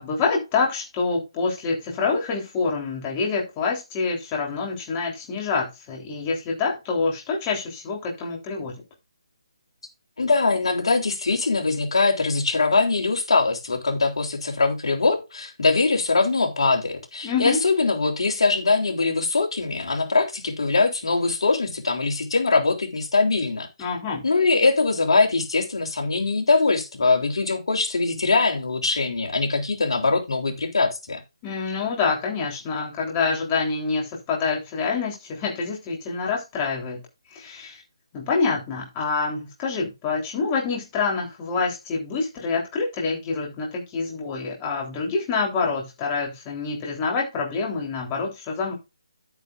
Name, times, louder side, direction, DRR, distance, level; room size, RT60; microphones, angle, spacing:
voice 1, 0.0-8.7 17.2-17.6 23.8-24.3 31.4-37.0 37.3-37.8 38.1-48.7, left 4 dB, 20° left, 3.4 m, -26 dB
voice 2, 10.2-23.7 24.2-31.2, left 3 dB, 65° left, 3.3 m, -22 dB
11.0 x 9.5 x 2.5 m
figure-of-eight pair, 160°, 3 cm